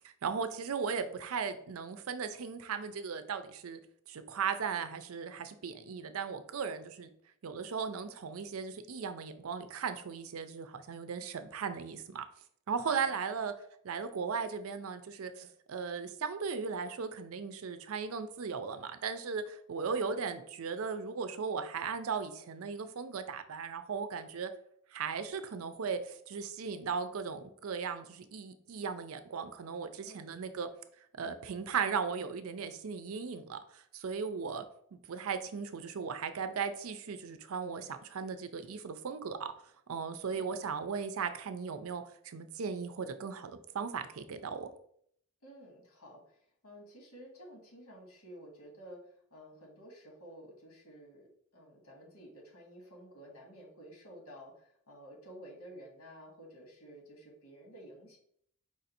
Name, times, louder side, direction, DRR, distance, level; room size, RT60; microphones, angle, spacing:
voice 1, 0.2-3.8 4.1-7.1 7.4-12.2 12.7-13.5 13.8-24.5 24.9-30.7 31.1-34.6 34.9-39.5 39.9-44.7, right 5 dB, 80° right, 10 dB, 0.5 m, -37 dB
voice 2, 30.0-30.3 40.3-40.6 45.4-46.4 46.6-49.0 49.3-51.3 51.5-58.2, equal, 90° left, 0 dB, 1.7 m, -52 dB
4.8 x 2.6 x 4.1 m, 0.66 s
head